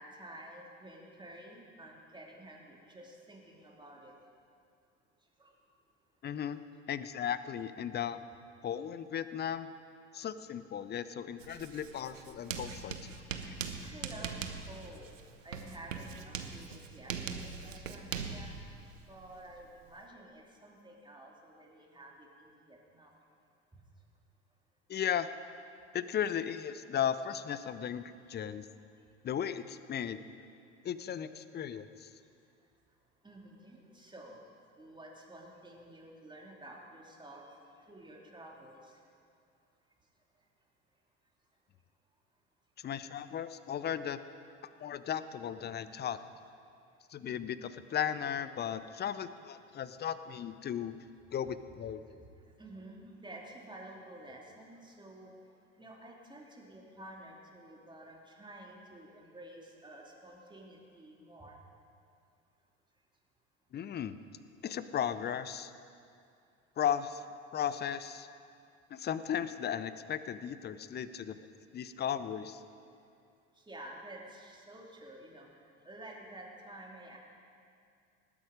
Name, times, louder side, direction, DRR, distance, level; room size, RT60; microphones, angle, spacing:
voice 1, 0.0-4.1 5.4-5.5 6.6-6.7 13.8-14.4 14.7-15.1 15.4-18.6 19.0-23.1 33.2-34.4 34.8-37.4 37.9-39.0 52.6-55.3 55.8-61.6 73.6-77.2, right 1 dB, 10° right, -1 dB, 2.7 m, -51 dB
voice 2, 6.2-6.6 6.9-8.2 8.6-9.7 10.1-13.2 13.5-13.6 24.9-25.3 25.9-28.7 29.2-30.2 30.8-32.1 42.8-44.2 44.8-46.2 47.1-51.0 51.3-52.0 63.7-64.1 64.6-65.7 66.8-67.2 67.5-68.3 68.9-71.4 71.7-72.6, left 9 dB, 25° left, 14 dB, 0.6 m, -36 dB
Writing, 11.4-20.1, right 6 dB, 85° right, 0.8 m, -42 dB
19.0 x 8.6 x 5.1 m, 2.4 s
figure-of-eight pair, 65°, 38 cm